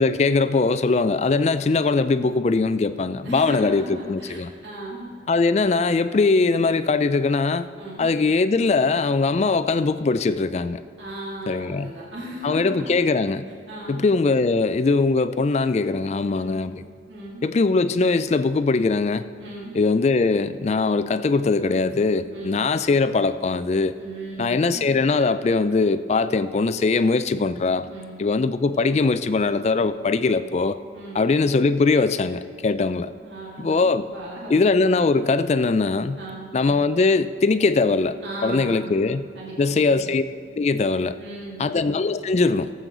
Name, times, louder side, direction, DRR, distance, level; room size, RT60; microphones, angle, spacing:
voice 1, 0.0-4.5 5.3-7.7 8.0-10.8 11.5-11.9 12.4-13.4 13.9-16.8 17.4-19.3 19.7-24.0 24.4-27.9 28.2-30.8 31.2-33.1 33.6-34.1 34.5-36.2 36.5-39.3 39.6-40.2 40.6-41.2 41.6-42.7, left 3 dB, 35° left, 13 dB, 0.3 m, -21 dB
voice 2, 3.2-5.1 7.7-8.1 11.0-13.0 13.7-14.0 16.3-16.5 17.1-17.4 19.4-19.7 22.3-22.6 24.0-24.9 27.9-28.3 30.9-31.3 33.2-34.6 36.2-36.5 38.2-39.0 39.3-40.1 41.1-41.9, right 1 dB, 70° right, -5 dB, 2.1 m, -37 dB
18.0 x 7.7 x 3.9 m, 2.1 s
head